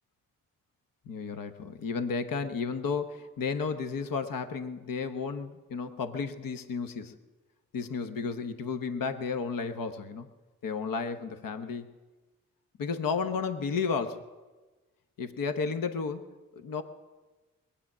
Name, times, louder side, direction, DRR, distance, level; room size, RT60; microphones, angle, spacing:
voice 1, 1.1-7.2 7.7-10.3 10.6-11.9 12.8-14.3 15.2-16.3 16.5-16.8, left 5 dB, 75° left, 9 dB, 1.1 m, -33 dB
20.5 x 8.6 x 7.4 m, 1.2 s
supercardioid pair, 45°, 34 cm